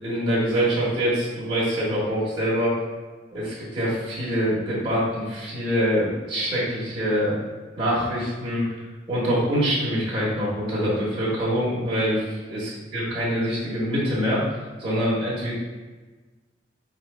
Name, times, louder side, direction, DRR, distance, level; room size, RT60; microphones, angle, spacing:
voice 1, 0.0-2.8 3.3-7.4 7.8-8.6 9.1-12.6 12.9-14.4 14.8-15.5, equal, 25° right, -8 dB, 1.3 m, -24 dB
4.6 x 2.6 x 3.3 m, 1.3 s
head